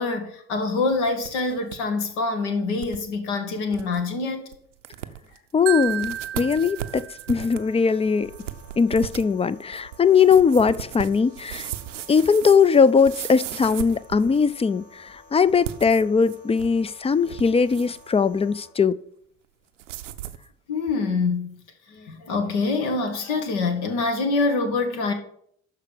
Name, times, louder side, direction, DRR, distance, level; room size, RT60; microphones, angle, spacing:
voice 1, 0.0-4.5 20.7-21.6 21.9-25.1, left 3 dB, 70° left, 1.6 m, -25 dB
sound 1, 0.9-1.8 2.1-2.2 2.8-3.0 3.4-3.5 3.7-4.0 4.5-4.6 4.8-5.4 5.8-14.6 15.5-16.8 17.1-18.1 19.8-20.5, right 12 dB, 80° right, 0.6 m, -37 dB
voice 2, 5.5-8.3 8.8-11.7 12.1-18.9, left 6 dB, 15° left, 0.4 m, -20 dB
Marimba xylophone, 5.7-7.7, right 11 dB, 40° right, 0.7 m, -32 dB
sound 2, 7.5-18.7, left 2 dB, 85° left, 1.6 m, -52 dB
12.5 x 4.7 x 7.0 m
figure-of-eight pair, 45°, 36 cm